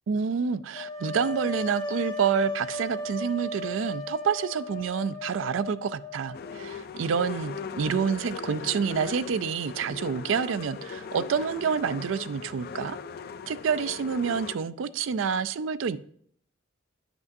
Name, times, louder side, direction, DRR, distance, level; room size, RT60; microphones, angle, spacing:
voice 1, 0.1-13.0 13.5-16.0, right 6 dB, 80° right, 0.4 m, -28 dB
sound 1, 0.7-6.6, left 1 dB, 20° left, 0.7 m, -36 dB
sound 2, 6.3-14.6, left 6 dB, 50° left, 0.4 m, -39 dB
10.5 x 6.0 x 2.6 m
head